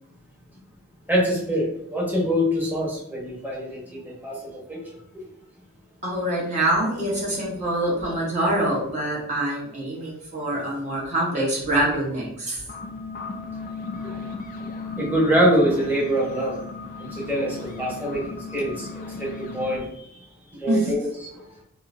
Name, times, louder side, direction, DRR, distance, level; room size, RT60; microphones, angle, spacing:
voice 1, 1.1-4.8 5.1-5.2 14.0-14.1 15.0-16.6 17.0-20.2 20.5-21.5, equal, 10° right, -5 dB, 1.0 m, -25 dB
voice 2, 6.0-12.6 20.7-20.9, right 1 dB, 35° right, -5 dB, 1.0 m, -25 dB
sound 1, 12.6-19.8, left 4 dB, 40° left, 0.4 m, -36 dB
3.6 x 2.6 x 2.5 m, 0.74 s
head